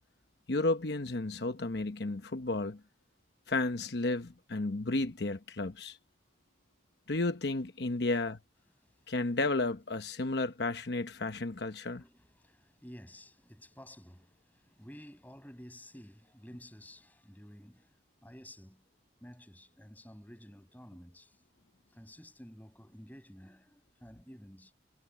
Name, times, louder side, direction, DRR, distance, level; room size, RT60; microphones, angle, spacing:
voice 1, 0.5-2.8 3.5-6.0 7.1-8.4 9.1-12.0, left 2 dB, 75° left, 1.0 m, -32 dB
voice 2, 12.0-17.9 18.2-18.9 19.2-21.4 21.9-24.7, equal, 10° left, 7.9 m, -52 dB
head